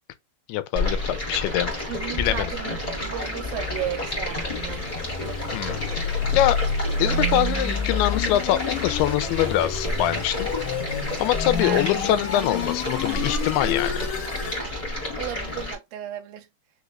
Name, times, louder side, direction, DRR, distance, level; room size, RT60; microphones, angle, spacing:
voice 1, 0.5-1.7 2.2-2.5 5.5-5.8 6.3-6.6 7.0-10.5 11.2-14.1, left 13 dB, 90° left, 2.6 m, -24 dB
Stream, 0.7-15.7, left 1 dB, 25° left, 0.9 m, -30 dB
voice 2, 1.9-4.9 11.6-11.9 15.2-16.5, right 12 dB, 80° right, 2.3 m, -34 dB
sound 1, 2.4-14.6, left 4 dB, 70° left, 2.1 m, -30 dB
6.1 x 2.5 x 3.0 m
omnidirectional pair, 4.5 m